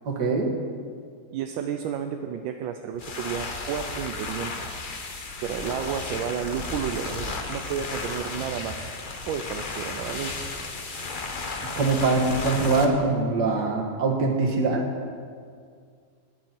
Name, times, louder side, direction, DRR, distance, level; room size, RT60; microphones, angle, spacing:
voice 1, 0.1-0.5 11.6-14.8, right 3 dB, 55° right, 0 dB, 2.1 m, -23 dB
voice 2, 1.3-4.8 5.4-8.9 9.3-10.3, right 8 dB, 75° right, 6 dB, 1.2 m, -32 dB
sound 1, 2.9-12.8, left 3 dB, 50° left, 0.5 m, -34 dB
19.0 x 8.4 x 4.5 m, 2.1 s
omnidirectional pair, 2.3 m